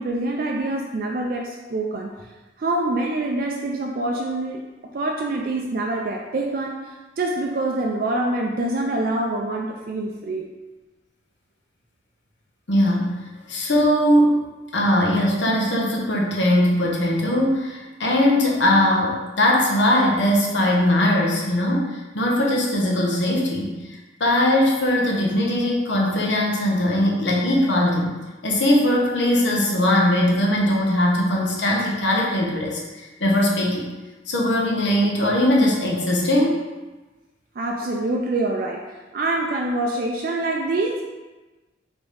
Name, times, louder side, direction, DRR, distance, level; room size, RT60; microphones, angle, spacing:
voice 1, 0.0-2.1 2.6-4.6 4.9-10.5 37.6-41.1, right 2 dB, 50° right, 1 dB, 0.3 m, -25 dB
voice 2, 12.7-14.4 14.7-28.1 28.4-33.9 34.3-36.6, left 1 dB, 75° left, -2 dB, 0.9 m, -20 dB
3.9 x 3.5 x 3.3 m, 1.2 s
head